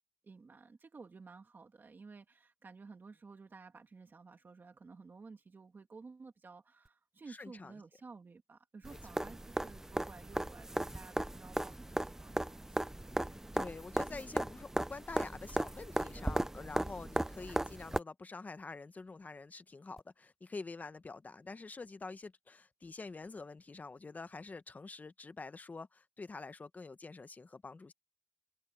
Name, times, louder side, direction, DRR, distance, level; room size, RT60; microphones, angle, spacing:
voice 1, 0.2-13.2, right 4 dB, 50° right, 2.1 m, -54 dB
voice 2, 7.3-7.7 8.9-9.0 13.5-27.9, left 3 dB, 40° left, 0.8 m, -47 dB
sound 1, 8.8-18.0 20.0-20.1, right 1 dB, 10° right, 0.3 m, -37 dB
wide cardioid pair, 140°, 4 cm